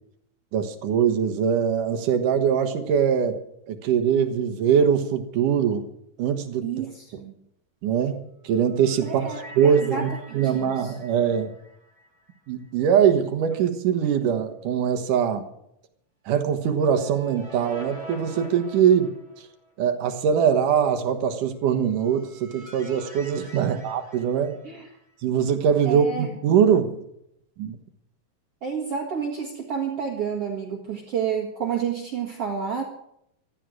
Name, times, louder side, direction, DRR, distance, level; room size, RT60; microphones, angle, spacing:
voice 1, 0.5-3.4 3.7-5.8 6.2-6.9 7.8-11.5 12.5-15.4 16.3-19.1 19.8-24.6 25.2-27.0 27.6-27.8, right 8 dB, 75° right, 8 dB, 2.8 m, -22 dB
voice 2, 6.6-7.3 9.0-10.9 24.6-24.9 25.8-26.3 28.6-32.8, right 7 dB, 50° right, 0 dB, 2.6 m, -30 dB
sound 1, 8.4-12.7 13.0-13.1 16.6-19.7 21.7-25.1, equal, 10° left, 4.3 m, -46 dB
15.5 x 13.0 x 6.3 m, 0.74 s
omnidirectional pair, 3.9 m